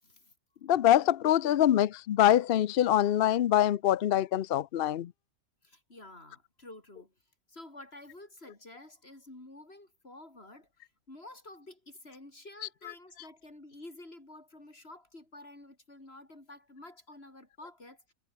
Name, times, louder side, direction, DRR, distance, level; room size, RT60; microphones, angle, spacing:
voice 1, 0.0-0.3 5.6-7.1 7.5-18.1, left 2 dB, 40° left, 5.8 m, -50 dB
voice 2, 0.7-5.1, left 11 dB, 65° left, 0.6 m, -24 dB
omnidirectional pair, 1.5 m